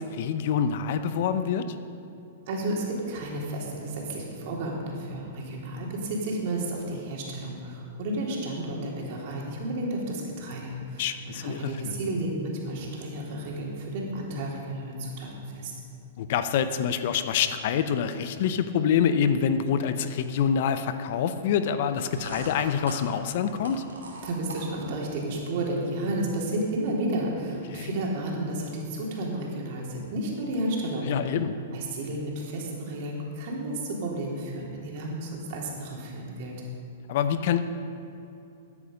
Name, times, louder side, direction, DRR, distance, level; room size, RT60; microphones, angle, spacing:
voice 1, 0.0-1.7 11.0-12.0 16.2-23.8 27.7-27.9 31.1-31.6 37.1-37.6, left 7 dB, 60° left, 11 dB, 0.8 m, -26 dB
voice 2, 2.5-15.7 24.2-31.1 31.7-36.6, right 1 dB, 55° right, -2 dB, 3.3 m, -32 dB
sound 1, 21.8-25.1, right 2 dB, 85° right, 2.7 m, -42 dB
14.0 x 9.7 x 5.2 m, 2.8 s
hypercardioid pair, 120°, 0 cm